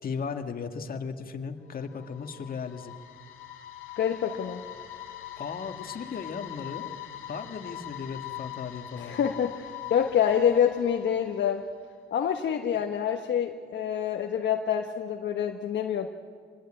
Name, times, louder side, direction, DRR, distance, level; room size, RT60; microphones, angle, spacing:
voice 1, 0.0-2.9 5.4-6.9 7.3-9.2, left 5 dB, 45° left, 6 dB, 1.9 m, -36 dB
sound 1, 1.7-11.8, left 12 dB, 90° left, 2.6 m, -42 dB
voice 2, 4.0-4.6 9.0-11.6 12.1-16.1, left 8 dB, 65° left, 3 dB, 1.3 m, -26 dB
26.0 x 20.0 x 8.9 m, 2.1 s
cardioid pair, 90°, 20 cm